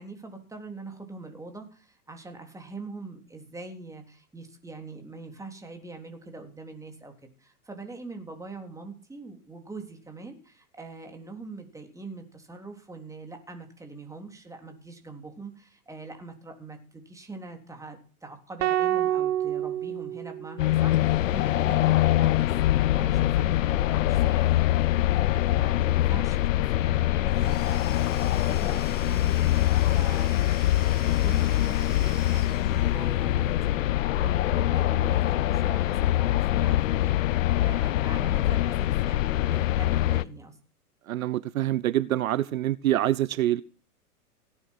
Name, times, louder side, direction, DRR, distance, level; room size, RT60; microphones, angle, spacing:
voice 1, 0.0-22.6 22.9-29.6 29.9-30.4 31.0-37.2 37.6-40.6, right 3 dB, 5° right, 3.6 m, -43 dB
sound 1, 18.6-20.9, right 12 dB, 45° right, 1.6 m, -28 dB
sound 2, 20.6-40.2, left 14 dB, 55° left, 0.8 m, -24 dB
Domestic sounds home sounds / Tools, 27.3-33.4, left 4 dB, 20° left, 6.1 m, -45 dB
voice 2, 41.1-43.6, right 13 dB, 65° right, 0.8 m, -25 dB
17.5 x 10.0 x 6.5 m
hypercardioid pair, 110°, 46 cm